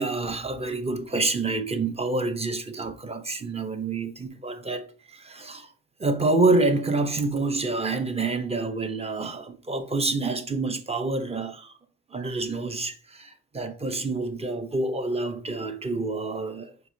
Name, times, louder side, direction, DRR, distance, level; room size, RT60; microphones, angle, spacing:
voice 1, 0.0-5.7 6.0-11.7 12.1-16.7, right 3 dB, 20° right, 0.7 m, -27 dB
4.6 x 3.4 x 2.7 m
cardioid pair, 90°, 30 cm